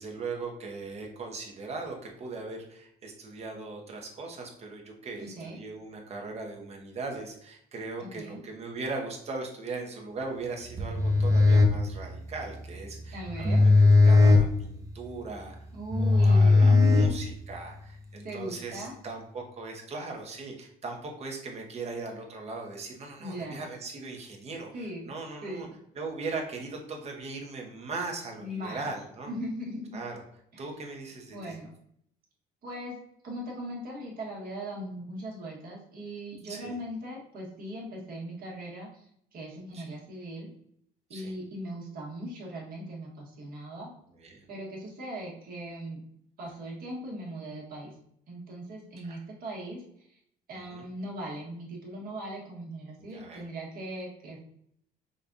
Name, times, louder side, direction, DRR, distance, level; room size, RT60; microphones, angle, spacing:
voice 1, 0.0-15.5 16.0-25.7 26.0-29.3 29.9-30.2 30.6-31.6 36.4-36.7 39.7-39.8 41.1-41.3 44.2-44.5 49.0-49.2 50.5-50.8 53.0-53.5, right 3 dB, 40° right, 1 dB, 0.9 m, -39 dB
voice 2, 5.2-5.6 8.0-8.4 13.1-13.6 15.7-17.2 18.2-18.9 23.2-23.6 24.7-25.1 25.4-25.8 28.4-28.9 29.2-30.0 30.5-30.6 31.3-31.7 32.6-33.0 33.2-40.5 41.1-43.9 44.5-46.0 46.4-47.9 48.3-50.2 50.5-54.4, equal, 60° right, -3 dB, 1.4 m, -39 dB
sound 1, 10.7-17.6, left 3 dB, 20° right, 0.6 m, -21 dB
5.2 x 2.3 x 2.6 m, 0.71 s
cardioid pair, 110°, 17 cm